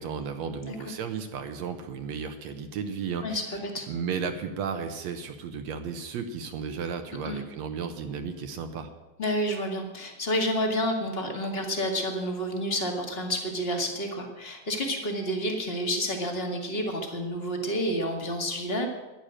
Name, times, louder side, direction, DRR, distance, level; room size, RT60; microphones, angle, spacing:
voice 1, 0.0-3.4 3.9-8.9, right 6 dB, 70° right, 7 dB, 2.1 m, -34 dB
voice 2, 0.6-0.9 3.2-3.9 7.3-7.4 9.2-18.9, equal, 25° left, 2 dB, 1.8 m, -29 dB
11.5 x 11.0 x 8.9 m, 1.1 s
omnidirectional pair, 3.3 m